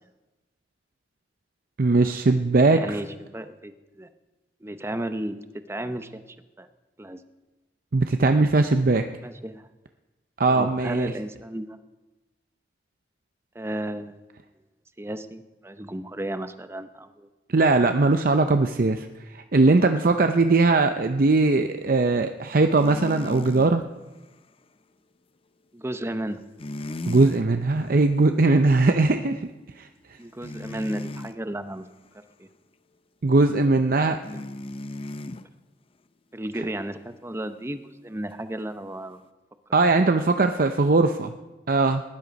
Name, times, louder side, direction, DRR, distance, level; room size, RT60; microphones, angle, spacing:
voice 1, 1.8-2.8 7.9-9.0 10.4-11.1 17.5-23.8 27.0-29.5 29.8-29.9 33.2-34.2 39.7-41.3 41.7-42.0, right 3 dB, 55° right, 7 dB, 0.6 m, -20 dB
voice 2, 2.7-4.1 4.6-5.4 5.7-6.7 7.0-7.2 9.2-9.7 10.4-11.8 13.5-14.2 15.0-17.3 25.7-26.4 30.2-31.9 32.4-32.5 34.3-34.4 36.3-39.2, right 1 dB, 15° right, 10 dB, 0.7 m, -34 dB
sound 1, 22.8-23.7 26.6-27.4 27.9-28.1 30.4-31.3 34.2-35.5 38.6-38.7, left 1 dB, 30° left, 0.6 m, -35 dB
19.0 x 11.0 x 5.2 m, 1.1 s
head